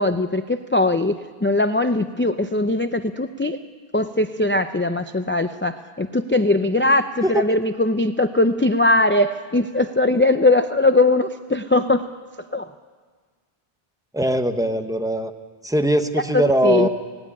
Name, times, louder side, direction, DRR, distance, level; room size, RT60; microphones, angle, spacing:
voice 1, 0.0-3.6 3.9-12.1 12.5-12.7 16.3-16.9, left 2 dB, 15° left, 8 dB, 0.4 m, -20 dB
voice 2, 14.1-15.3 15.6-16.9, right 1 dB, 5° right, 7 dB, 0.9 m, -20 dB
18.0 x 17.0 x 9.9 m, 1.5 s
omnidirectional pair, 1.0 m